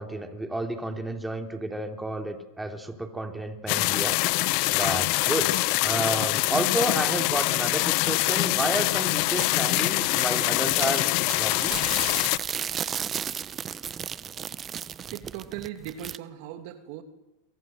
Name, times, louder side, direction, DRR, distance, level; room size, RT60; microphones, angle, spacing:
voice 1, 0.0-4.2 4.7-11.8, right 1 dB, 5° right, 5 dB, 3.3 m, -31 dB
sound 1, 3.7-12.4, left 23 dB, 55° left, 1.0 m, -24 dB
sound 2, 9.1-16.2, right 8 dB, 25° right, 0.9 m, -35 dB
voice 2, 15.1-17.0, right 11 dB, 60° right, 8 dB, 2.6 m, -38 dB
28.0 x 24.0 x 7.8 m, 0.99 s
hypercardioid pair, 115°, 0 cm